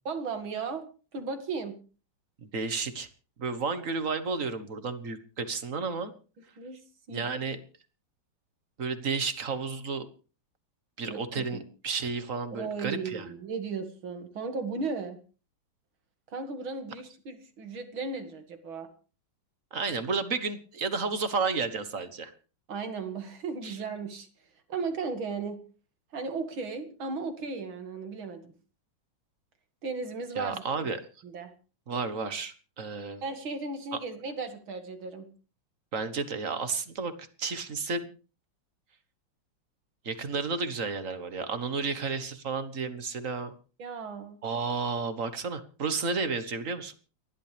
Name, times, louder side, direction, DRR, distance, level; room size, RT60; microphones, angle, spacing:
voice 1, 0.0-0.8 1.1-1.7 6.6-6.8 7.1-7.3 11.1-11.6 12.5-15.2 16.3-18.9 22.7-24.3 24.7-25.6 26.1-28.5 29.8-30.6 31.2-31.5 33.2-35.3 43.8-44.4, right 4 dB, 85° right, 7 dB, 2.9 m, -35 dB
voice 2, 2.5-3.1 3.4-6.1 7.1-7.6 8.8-10.1 11.0-13.3 19.7-22.3 23.6-23.8 30.4-31.0 31.9-33.2 33.9-34.0 35.9-38.1 40.0-43.5 44.4-46.9, right 4 dB, 45° right, 11 dB, 1.6 m, -32 dB
29.5 x 11.5 x 3.4 m, 0.37 s
omnidirectional pair, 2.2 m